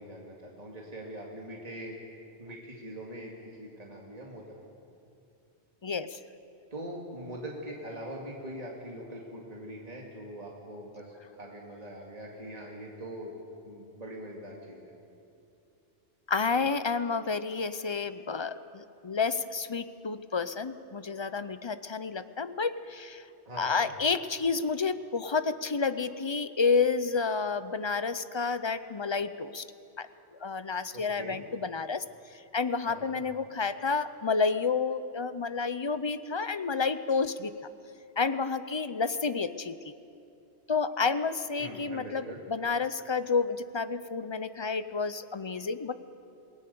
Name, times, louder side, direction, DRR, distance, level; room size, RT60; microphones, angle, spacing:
voice 1, 0.0-2.0 2.4-4.6 6.7-13.4 13.6-14.9 23.5-23.9 30.9-31.4 32.9-33.2 41.6-42.4, right 1 dB, 35° right, -2 dB, 2.4 m, -42 dB
voice 2, 5.8-6.2 16.3-23.2 23.6-29.6 30.0-30.1 30.4-32.0 32.5-37.5 38.2-39.9 40.7-45.9, left 4 dB, 30° left, 12 dB, 0.6 m, -30 dB
27.5 x 18.0 x 6.9 m, 2.6 s
omnidirectional pair, 1.1 m